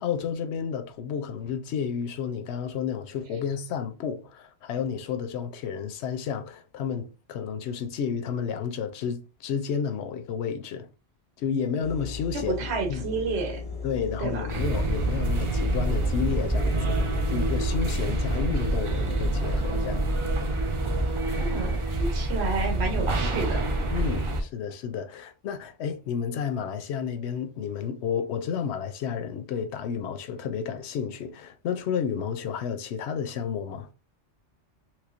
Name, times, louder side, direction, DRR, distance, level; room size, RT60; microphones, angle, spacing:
voice 1, 0.0-10.9 11.4-12.5 12.9-13.0 13.8-17.0 17.3-20.1 23.9-33.9, left 7 dB, 70° left, 0.8 m, -31 dB
sound 1, 11.8-18.5, left 5 dB, 40° left, 0.6 m, -36 dB
voice 2, 12.3-13.6 14.2-14.5 21.3-23.7, right 4 dB, 65° right, 1.1 m, -30 dB
sound 2, 14.5-24.4, right 2 dB, 45° right, 0.4 m, -26 dB
3.2 x 3.1 x 2.4 m
omnidirectional pair, 1.2 m